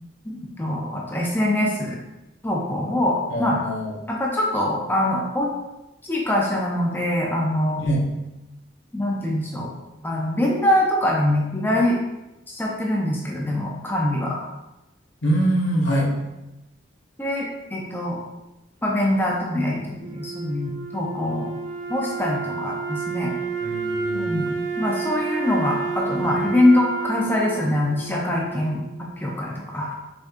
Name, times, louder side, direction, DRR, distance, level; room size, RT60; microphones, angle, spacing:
voice 1, 0.3-2.0 2.4-3.6 4.1-5.5 6.0-7.8 8.9-9.7 10.0-12.0 12.5-14.5 17.2-18.2 18.8-21.5 21.9-23.3 24.1-28.8 29.2-29.9, left 1 dB, 10° left, -2 dB, 0.5 m, -23 dB
voice 2, 3.3-3.9 7.8-8.0 15.2-16.1 23.6-24.3, right 1 dB, 80° left, -2 dB, 1.0 m, -23 dB
Wind instrument woodwind instrument, 20.0-29.0, right 5 dB, 70° right, 1.0 m, -30 dB
5.0 x 4.0 x 2.5 m, 0.99 s
head